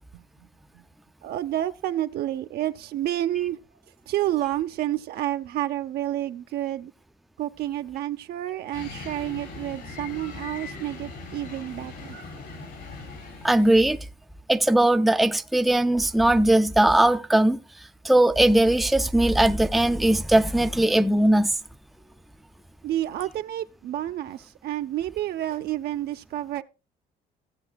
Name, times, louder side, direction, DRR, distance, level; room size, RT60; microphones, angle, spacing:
voice 1, 0.1-0.5 0.7-0.8 1.2-3.6 4.1-6.9 7.4-12.2 22.8-26.6, right 13 dB, 70° right, 0.8 m, -29 dB
sound 1, 8.7-14.0, left 4 dB, 85° left, 4.2 m, -40 dB
voice 2, 13.4-14.0 14.5-17.6 18.0-21.5, right 1 dB, ahead, 0.5 m, -19 dB
16.5 x 7.8 x 2.3 m
cardioid pair, 110°, 17 cm